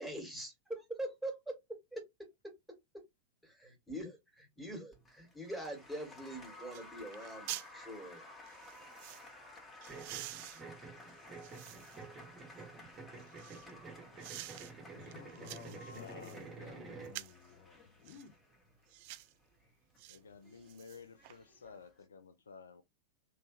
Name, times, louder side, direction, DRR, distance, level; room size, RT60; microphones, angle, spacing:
voice 1, 0.0-1.6 1.9-2.0 3.4-8.2, right 1 dB, ahead, 1.8 m, -43 dB
Applause, 4.9-22.1, left 2 dB, 15° left, 1.4 m, -56 dB
sound 1, 6.2-6.3 6.7-6.9 7.1-7.7 8.5-9.3 9.8-12.1 12.6-13.7 14.2-14.7 15.1-16.4 17.0-17.5 18.0-18.3 18.9-19.3 20.0-20.2 20.5-21.4 21.7-21.8, right 16 dB, 45° right, 0.3 m, -48 dB
sound 2, 9.9-17.2, right 4 dB, 20° right, 0.9 m, -50 dB
voice 2, 14.5-18.4, left 7 dB, 45° left, 0.8 m, -54 dB
voice 3, 15.9-16.9 20.1-22.8, left 5 dB, 70° left, 0.4 m, -54 dB
3.1 x 3.0 x 3.1 m
figure-of-eight pair, 90°, 0 cm